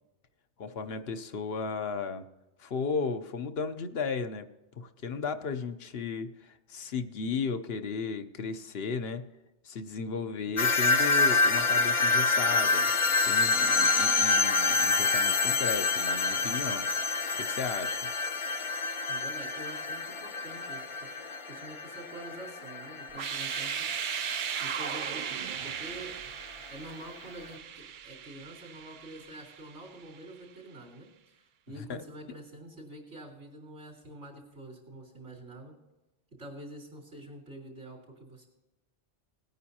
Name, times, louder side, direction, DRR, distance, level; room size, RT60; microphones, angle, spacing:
voice 1, 0.6-2.3 2.6-4.5 4.8-9.3 9.6-12.9 13.3-16.9 17.4-18.0 31.8-32.0, left 5 dB, 65° left, 9 dB, 1.0 m, -35 dB
sound 1, 10.6-25.5, left 3 dB, 35° left, 0.5 m, -28 dB
voice 2, 19.1-20.9 21.5-24.0 24.6-26.2 26.7-35.7 36.4-38.5, right 1 dB, 85° right, -1 dB, 4.0 m, -46 dB
sound 2, 23.1-30.0, right 8 dB, 60° right, 0.6 m, -37 dB
19.0 x 9.4 x 2.9 m, 1.0 s
omnidirectional pair, 1.1 m